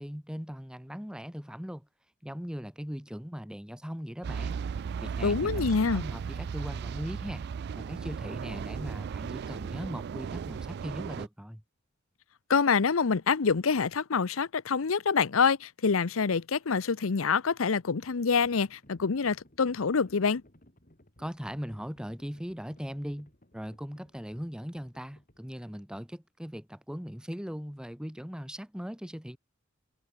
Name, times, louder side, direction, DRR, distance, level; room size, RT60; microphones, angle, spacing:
voice 1, 0.0-1.9 2.2-4.6 5.0-7.5 7.8-11.6 21.2-29.4, equal, 5° right, 1.6 m, -39 dB
sound 1, 4.2-11.3, right 6 dB, 55° right, 0.3 m, -36 dB
voice 2, 5.2-6.0 12.5-20.4, left 5 dB, 85° left, 0.7 m, -26 dB
Livestock farm animals working animals, 17.5-26.2, left 1 dB, 40° left, 5.3 m, -61 dB
head